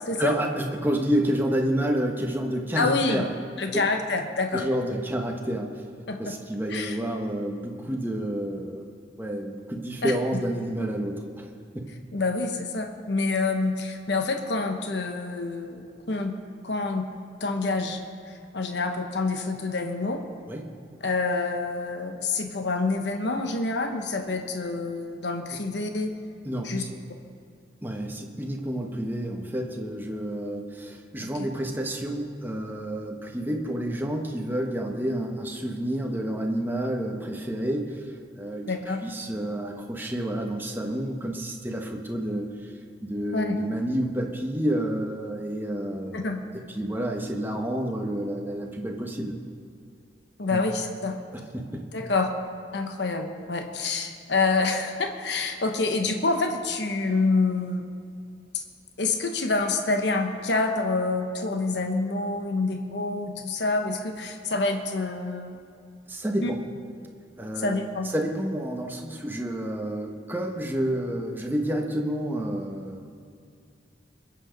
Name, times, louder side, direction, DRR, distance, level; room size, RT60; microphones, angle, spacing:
voice 1, 0.2-3.3 3.7-3.8 4.5-5.7 6.2-8.9 9.2-11.5 11.7-11.8 20.5-20.6 26.4-27.0 27.8-38.0 38.3-38.7 39.0-42.5 43.0-46.3 46.7-49.3 50.5-50.6 51.3-51.8 66.1-66.6 67.4-67.8 68.1-73.2, right 1 dB, 10° right, 1 dB, 1.2 m, -29 dB
voice 2, 2.7-3.3 3.6-4.6 6.1-6.3 6.7-7.0 10.0-10.1 12.1-16.3 16.6-17.1 17.4-18.0 18.3-20.2 21.0-26.1 26.6-26.8 31.2-31.5 38.7-39.0 43.3-43.6 46.1-46.4 50.4-51.2 51.9-52.3 52.7-57.9 58.5-58.6 59.0-65.6 66.4-66.5 67.6-68.1, left 3 dB, 70° left, 5 dB, 1.1 m, -27 dB
21.5 x 8.1 x 5.2 m, 2.4 s
head